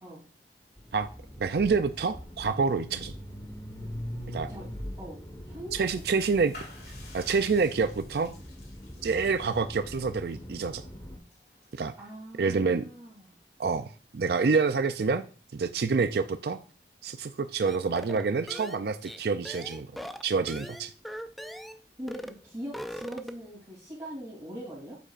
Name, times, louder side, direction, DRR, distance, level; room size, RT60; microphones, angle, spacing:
sound 1, 0.8-11.2, equal, 20° left, 1.3 m, -42 dB
voice 1, 1.4-3.1 4.3-4.5 5.7-6.6 7.1-8.3 9.0-10.8 11.7-11.9 12.4-12.8 13.6-15.2 15.5-16.6 17.0-19.9 20.2-20.9, right 4 dB, 60° right, 0.4 m, -27 dB
voice 2, 5.4-6.0 12.0-13.3 22.0-25.0, equal, 20° right, 3.0 m, -41 dB
sound 2, 5.8-12.5, left 2 dB, 60° left, 2.4 m, -53 dB
sound 3, 17.7-21.8 22.1-22.4 22.6-23.5, equal, ahead, 0.4 m, -40 dB
8.4 x 8.1 x 2.5 m
head